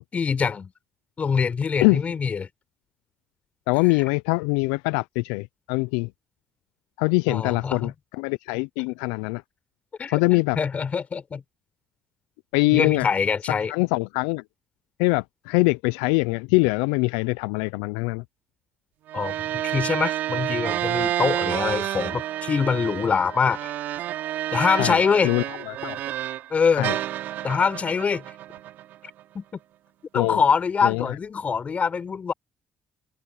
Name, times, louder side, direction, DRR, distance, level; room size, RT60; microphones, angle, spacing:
voice 1, 0.1-0.7 1.2-2.5 7.3-7.9 10.0-11.4 12.7-13.7 19.1-23.7 24.5-25.3 26.5-26.9 27.4-28.2 29.3-29.4 30.1-32.3, left 6 dB, 45° left, 4.2 m, -24 dB
voice 2, 3.7-6.1 7.0-9.4 10.1-10.6 12.5-13.1 13.7-14.4 15.0-18.2 24.8-26.0 26.7-27.0 30.1-30.4 30.8-31.1, left 26 dB, 85° left, 0.5 m, -23 dB
sound 1, 19.1-26.5 26.8-29.2, right 13 dB, 70° right, 3.2 m, -29 dB
open air
hypercardioid pair, 50°, 3 cm